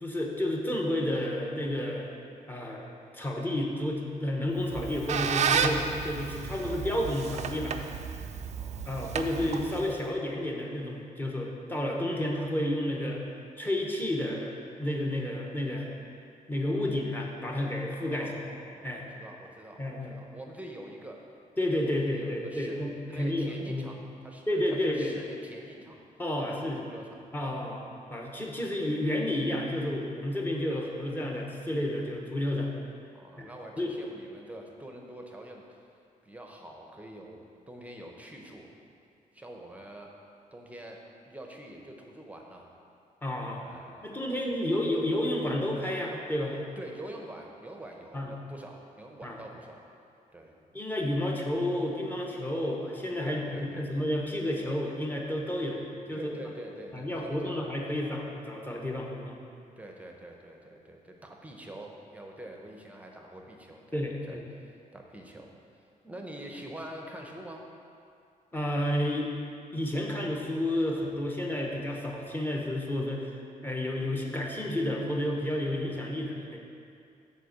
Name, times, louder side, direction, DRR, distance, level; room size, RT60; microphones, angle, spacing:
voice 1, 0.0-2.1 2.5-2.8 3.1-7.7 8.9-13.2 13.6-14.5 14.8-15.9 16.5-18.3 18.8-19.0 19.8-20.1 21.6-23.9 24.5-25.1 26.2-26.8 27.3-32.7 33.4-33.5 33.8-33.9 43.2-43.7 44.0-46.6 48.1-48.3 49.2-49.4 50.7-55.8 56.1-56.3 56.9-59.3 63.9-64.4 68.5-69.3 69.7-73.3 73.6-76.6, left 1 dB, 15° left, -1 dB, 1.0 m, -31 dB
Squeak, 4.6-10.1, right 7 dB, 50° right, 0.4 m, -32 dB
voice 2, 8.5-9.0 18.0-21.2 21.8-22.8 23.1-26.0 26.4-27.2 33.1-35.8 36.2-37.4 37.7-38.7 39.3-40.1 40.5-42.7 43.5-44.3 46.8-49.8 50.3-50.6 53.2-53.9 56.1-57.6 59.8-65.5 65.8-67.6, right 1 dB, 10° right, 1 dB, 0.8 m, -45 dB
6.6 x 4.3 x 6.6 m, 2.4 s
cardioid pair, 130°, 14 cm